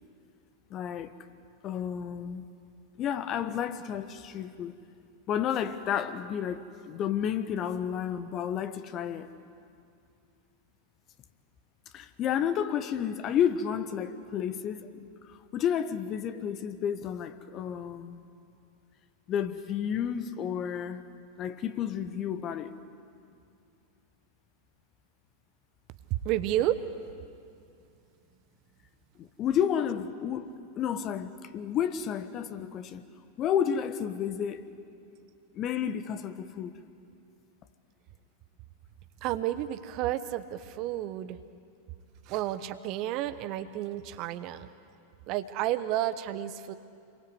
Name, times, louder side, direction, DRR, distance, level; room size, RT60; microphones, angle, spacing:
voice 1, 0.7-1.1 1.6-2.5 3.0-4.8 5.3-9.3 11.9-18.2 19.3-21.0 21.4-22.8 29.2-30.5 30.8-33.0 33.4-34.7 35.5-36.7, left 8 dB, 35° left, 1.3 m, -31 dB
voice 2, 26.1-26.8 39.2-41.4 42.3-44.7 45.3-46.7, right 13 dB, 40° right, 1.1 m, -31 dB
29.5 x 23.0 x 8.2 m
figure-of-eight pair, 90°, 0 cm